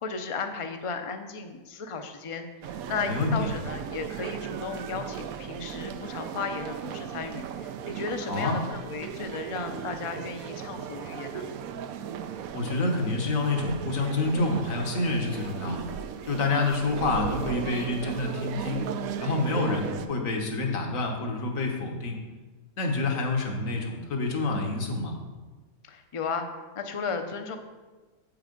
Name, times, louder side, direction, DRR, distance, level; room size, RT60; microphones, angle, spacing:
voice 1, 0.0-11.5 25.8-27.6, left 5 dB, 35° left, 6 dB, 0.5 m, -35 dB
sound 1, 2.6-20.1, right 8 dB, 85° right, 1.0 m, -36 dB
voice 2, 3.1-3.5 8.3-8.5 12.5-15.9 16.3-18.9 19.2-22.2 22.8-25.2, left 3 dB, 70° left, 2 dB, 1.6 m, -28 dB
8.4 x 5.8 x 5.2 m, 1.3 s
omnidirectional pair, 1.5 m